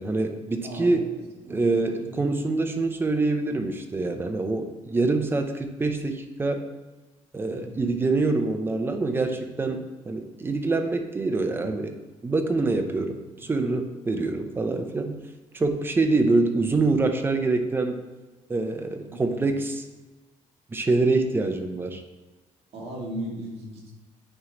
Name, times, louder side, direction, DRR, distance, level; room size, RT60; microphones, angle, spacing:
voice 1, 0.0-1.1 1.5-6.6 7.3-11.9 12.2-15.2 15.5-18.0 18.5-19.8 20.7-22.0, right 3 dB, 15° right, 6 dB, 0.5 m, -25 dB
voice 2, 0.6-1.7 2.0-2.2 7.5-7.8 19.1-19.5 22.7-23.9, right 1 dB, 50° right, -2 dB, 1.7 m, -37 dB
8.9 x 3.1 x 3.9 m, 1.2 s
cardioid pair, 160°, 13 cm